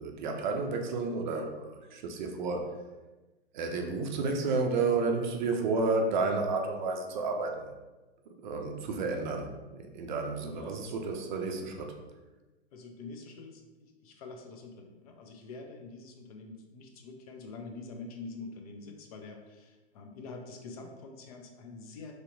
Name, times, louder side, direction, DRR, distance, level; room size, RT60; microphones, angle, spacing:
voice 1, 0.0-2.7 3.5-7.7 8.4-11.9, right 3 dB, 50° right, 4 dB, 0.5 m, -31 dB
voice 2, 10.4-11.0 12.7-22.1, left 3 dB, 35° left, 3 dB, 0.4 m, -46 dB
3.1 x 2.7 x 2.5 m, 1.2 s
hypercardioid pair, 115°, 32 cm